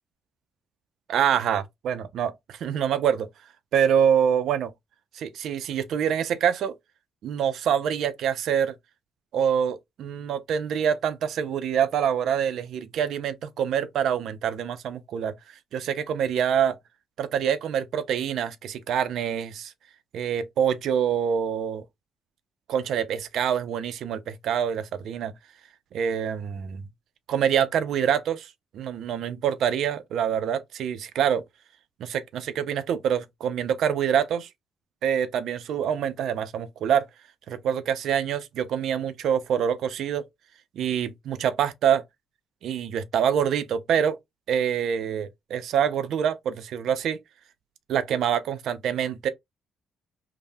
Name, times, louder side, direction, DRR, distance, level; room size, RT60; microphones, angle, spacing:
voice 1, 1.1-3.3 3.7-4.7 5.1-6.7 7.2-8.7 9.3-15.3 15.7-16.8 17.2-19.7 20.1-21.8 22.7-25.3 25.9-26.8 27.3-31.4 32.0-34.5 35.0-37.0 37.5-40.2 40.8-42.0 42.6-44.2 44.5-47.2 47.9-49.3, right 8 dB, 75° right, 0.4 m, -25 dB
3.3 x 2.0 x 2.5 m
cardioid pair, 90°, 0 cm